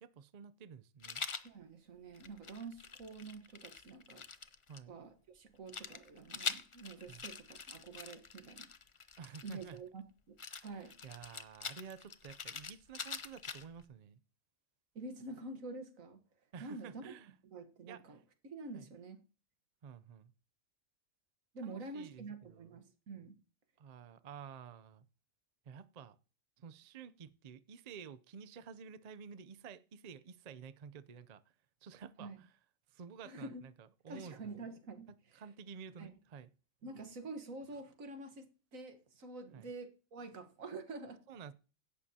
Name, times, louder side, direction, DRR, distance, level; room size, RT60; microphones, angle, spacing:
voice 1, 0.0-1.2 4.7-4.9 7.1-7.2 9.2-9.8 10.7-14.2 16.5-17.3 17.9-18.2 18.7-18.9 19.8-20.3 21.6-22.8 23.8-25.1 25.7-26.2 26.6-31.4 31.8-32.5 32.9-34.6 35.3-36.5 39.5-39.7 41.3-41.5, right 6 dB, 45° right, 0.5 m, -51 dB
Rattle, 1.0-1.5 2.1-4.8 5.7-9.8 10.4-13.8, left 5 dB, 40° left, 0.5 m, -44 dB
voice 2, 1.4-4.2 4.9-8.7 9.4-11.0 15.0-16.2 16.6-17.1 17.5-18.2 18.4-19.2 21.5-23.4 32.2-32.4 33.2-33.6 34.1-35.4 36.0-36.1 36.8-38.5 38.7-41.2, right 3 dB, 85° right, 1.8 m, -47 dB
16.0 x 11.5 x 2.8 m
omnidirectional pair, 1.4 m